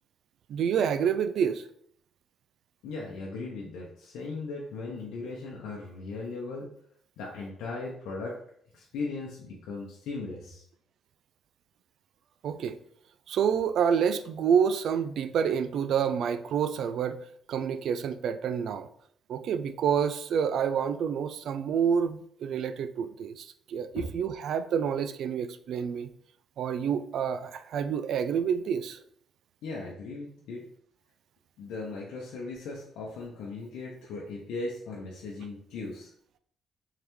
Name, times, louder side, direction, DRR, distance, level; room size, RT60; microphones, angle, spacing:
voice 1, 0.5-1.6 12.4-12.8 13.3-17.2 17.5-18.9 19.3-26.1 26.6-29.0, right 7 dB, 70° right, 11 dB, 0.3 m, -28 dB
voice 2, 2.8-6.7 7.2-8.4 8.7-10.6 23.9-24.1 29.6-30.6 31.6-36.1, left 3 dB, 90° left, -3 dB, 0.7 m, -38 dB
3.7 x 3.3 x 3.1 m, 0.66 s
cardioid pair, 90°, 0 cm